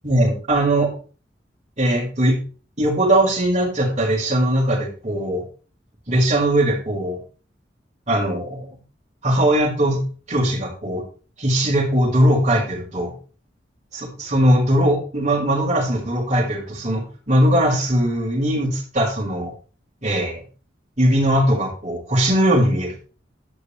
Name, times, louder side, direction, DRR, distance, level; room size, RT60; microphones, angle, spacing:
voice 1, 0.0-0.9 1.8-2.4 2.8-5.4 6.1-7.2 8.1-8.7 9.2-11.0 11.4-13.1 13.9-19.5 20.0-20.4 21.0-23.0, right 1 dB, 40° right, -4 dB, 5.1 m, -20 dB
11.5 x 11.0 x 3.4 m, 0.37 s
head